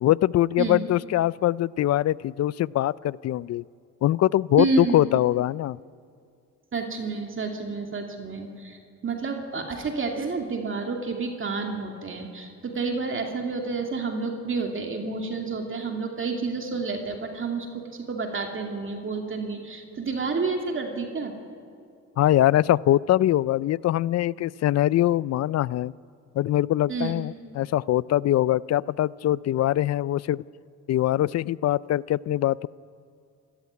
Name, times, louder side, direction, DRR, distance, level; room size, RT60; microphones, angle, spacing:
voice 1, 0.0-3.6 4.0-5.8 22.2-25.9 26.4-30.4 30.9-32.7, left 13 dB, 60° left, 22 dB, 0.5 m, -23 dB
voice 2, 4.6-5.0 6.7-21.3 26.9-27.1, right 4 dB, 40° right, 3 dB, 2.6 m, -29 dB
27.0 x 14.5 x 9.6 m, 2.3 s
cardioid pair, 90°, 30 cm